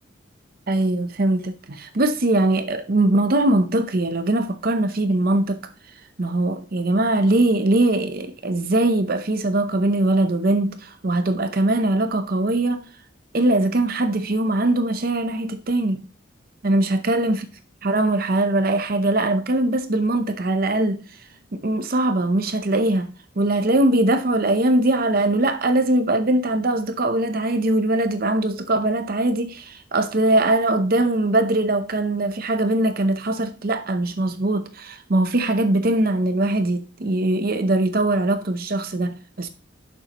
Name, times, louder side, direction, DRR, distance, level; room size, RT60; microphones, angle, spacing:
voice 1, 0.7-5.6 6.2-12.9 13.3-16.0 16.6-17.5 17.8-21.0 21.5-39.5, right 2 dB, 50° right, 0.7 m, -21 dB
11.0 x 6.9 x 3.0 m
head